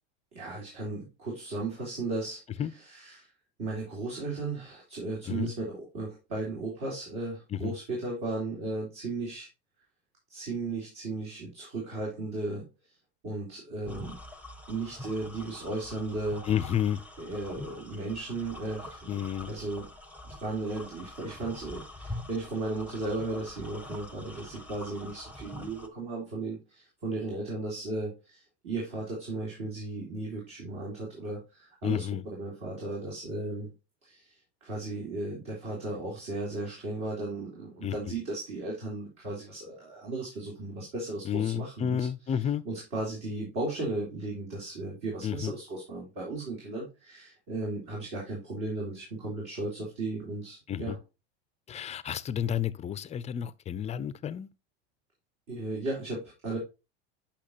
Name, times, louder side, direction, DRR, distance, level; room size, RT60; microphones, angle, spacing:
voice 1, 0.3-3.3 3.6-9.5 10.3-12.6 13.2-14.2 14.7-16.5 17.2-19.2 19.5-19.9 20.2-32.0 32.3-33.7 34.0-42.1 42.6-51.0 55.5-56.6, right 2 dB, 55° right, 3.5 m, -35 dB
sound 1, 13.8-25.9, left 1 dB, 5° right, 0.8 m, -45 dB
voice 2, 16.5-17.0 19.1-19.5 31.8-32.2 37.8-38.2 41.2-42.6 45.2-45.5 50.7-51.0 51.7-54.5, left 9 dB, 20° left, 0.4 m, -31 dB
8.4 x 5.8 x 2.8 m
supercardioid pair, 110°, 33 cm